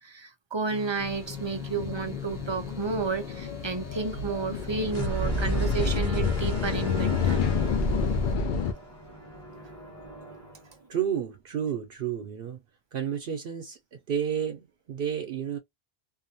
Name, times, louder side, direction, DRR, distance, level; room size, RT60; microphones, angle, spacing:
voice 1, 0.0-7.4, right 4 dB, 45° right, 0.4 m, -32 dB
sound 1, 0.7-8.3, left 6 dB, 5° right, 0.7 m, -42 dB
sound 2, 1.0-8.7, left 6 dB, 60° left, 0.6 m, -30 dB
sound 3, 4.8-10.7, right 2 dB, 25° left, 1.2 m, -33 dB
voice 2, 10.9-12.6 12.9-13.8 14.1-15.6, right 8 dB, 70° right, 0.8 m, -31 dB
2.6 x 2.2 x 2.6 m
omnidirectional pair, 1.0 m